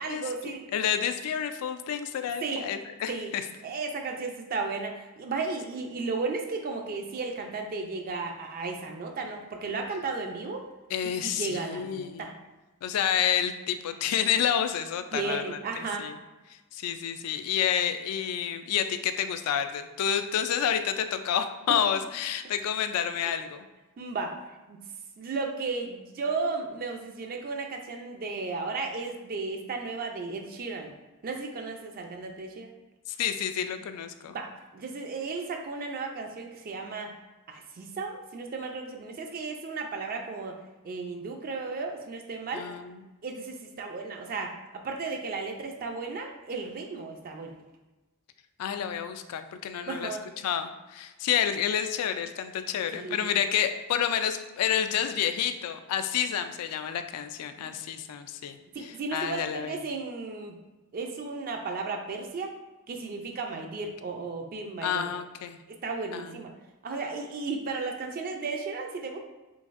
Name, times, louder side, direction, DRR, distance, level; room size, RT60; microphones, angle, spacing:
voice 1, 0.0-0.7 2.4-2.6 3.1-3.3 3.6-10.7 11.2-12.3 15.1-16.1 24.0-24.3 24.7-24.8 25.2-30.9 31.2-32.7 34.3-37.1 37.5-40.6 40.8-42.7 43.2-47.5 49.8-50.2 52.9-53.3 57.6-57.7 58.7-60.6 60.9-62.5 62.9-65.1 65.7-66.5 66.8-69.2, right 4 dB, 40° right, 3 dB, 0.4 m, -34 dB
voice 2, 0.7-3.4 10.9-12.3 12.8-16.2 16.7-23.6 33.1-34.4 42.5-43.0 48.6-50.1 50.4-58.6 59.1-59.8 64.8-65.6 66.1-66.4, left 8 dB, 80° left, 9 dB, 0.3 m, -29 dB
3.9 x 3.2 x 2.5 m, 1.1 s
head